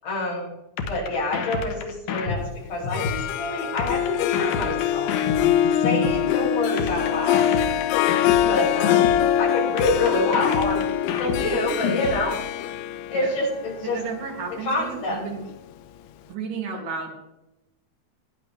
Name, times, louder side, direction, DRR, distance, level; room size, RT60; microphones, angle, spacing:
voice 1, 0.0-0.5 0.9-2.4 2.7-5.1 5.8-7.5 8.5-9.1 9.4-10.8 11.2-12.4 13.1-14.0 14.6-15.2, left 2 dB, 40° left, -4 dB, 7.2 m, -26 dB
sound 1, 0.8-3.3 3.8-6.3 6.8-9.3 9.8-12.3, left 6 dB, 70° left, 2.1 m, -29 dB
Harp, 2.8-15.7, left 10 dB, 90° left, 3.2 m, -24 dB
voice 2, 13.8-15.4 16.3-17.1, right 5 dB, 45° right, 0 dB, 3.7 m, -33 dB
21.0 x 10.5 x 3.4 m, 0.92 s
omnidirectional pair, 5.7 m